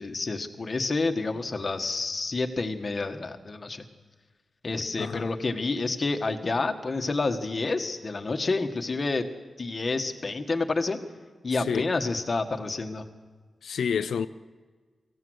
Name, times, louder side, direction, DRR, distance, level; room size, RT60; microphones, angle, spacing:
voice 1, 0.0-3.8 4.6-9.3 9.6-11.0 11.4-13.1, left 3 dB, 30° left, 1.4 m, -29 dB
voice 2, 5.0-5.3 11.5-11.9 13.6-14.3, left 7 dB, 90° left, 0.6 m, -29 dB
24.5 x 15.5 x 7.9 m
wide cardioid pair, 175°, 0 cm